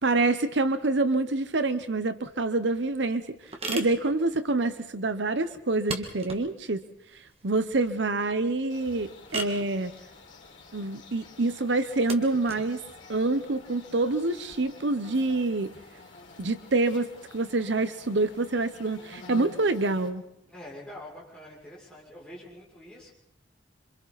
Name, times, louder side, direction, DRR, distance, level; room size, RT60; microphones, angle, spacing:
voice 1, 0.0-6.8 7.1-9.9 10.7-12.8 13.1-15.7 16.4-17.1 17.3-20.2, right 2 dB, 70° right, 11 dB, 0.9 m, -27 dB
sound 1, 2.1-14.5, right 2 dB, 30° right, 1.9 m, -41 dB
sound 2, 8.7-20.1, left 3 dB, 80° left, 3.7 m, -49 dB
voice 2, 20.5-23.1, left 1 dB, 5° left, -6 dB, 6.3 m, -45 dB
27.0 x 25.0 x 4.1 m, 0.76 s
head